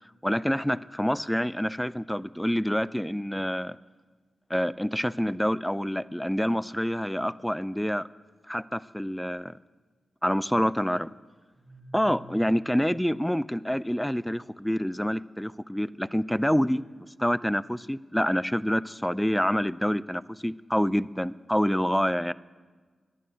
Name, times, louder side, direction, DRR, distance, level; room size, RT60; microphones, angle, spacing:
voice 1, 0.2-3.8 4.5-8.1 8.5-9.5 10.2-11.1 11.9-22.3, equal, 5° left, 19 dB, 0.4 m, -27 dB
sound 1, 11.5-14.4, equal, 35° right, 4.5 m, -50 dB
11.0 x 10.5 x 7.7 m, 1.4 s
supercardioid pair, 40°, 0 cm